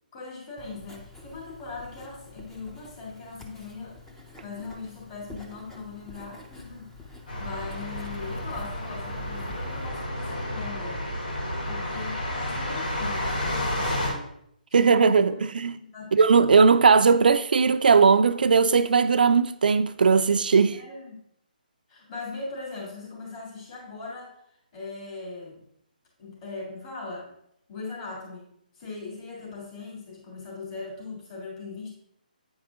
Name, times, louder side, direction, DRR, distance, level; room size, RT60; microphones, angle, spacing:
voice 1, 0.1-4.0 4.4-11.0 11.7-14.4 14.7-16.1 16.3-16.5 20.7-21.1 21.9-24.4 24.7-25.6 26.2-27.3 27.7-31.9, left 3 dB, 30° left, 3.1 m, -40 dB
Writing, 0.6-9.9, left 2 dB, 5° left, 0.6 m, -46 dB
sound 1, 7.3-14.1, left 1 dB, 75° left, 3.0 m, -31 dB
voice 2, 14.7-15.7 16.1-20.8, right 5 dB, 70° right, 0.4 m, -19 dB
8.7 x 4.8 x 3.6 m
hypercardioid pair, 160°, 5 cm